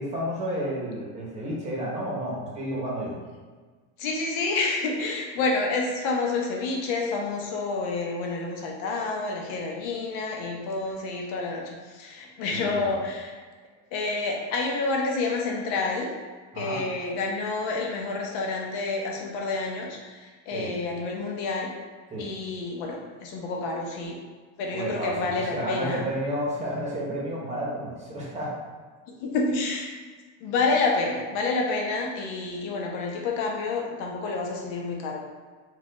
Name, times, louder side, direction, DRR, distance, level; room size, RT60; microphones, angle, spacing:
voice 1, 0.0-3.2 12.5-12.9 16.5-16.8 20.5-20.7 22.1-22.3 24.7-28.5, equal, 20° right, -4 dB, 0.9 m, -31 dB
voice 2, 4.0-13.4 13.9-16.1 16.5-21.7 22.2-24.2 24.6-26.0 29.2-29.9 30.4-35.2, left 3 dB, 65° left, 0 dB, 0.9 m, -29 dB
4.3 x 2.4 x 3.8 m, 1.5 s
cardioid pair, 160°, 35 cm